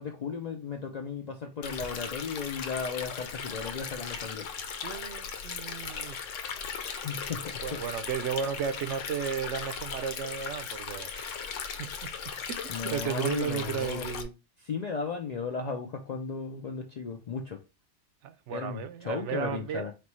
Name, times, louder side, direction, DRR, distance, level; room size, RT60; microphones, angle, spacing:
voice 1, 0.0-4.5 7.0-7.8 12.7-14.1 14.6-17.6 18.5-19.9, left 5 dB, 60° left, 0.4 m, -35 dB
Stream, 1.6-14.2, left 6 dB, 85° left, 1.0 m, -38 dB
voice 2, 4.8-6.2 7.6-11.5 11.8-11.9 12.5-14.3 18.2-19.9, right 8 dB, 75° right, 0.9 m, -34 dB
4.2 x 3.1 x 3.1 m
omnidirectional pair, 1.2 m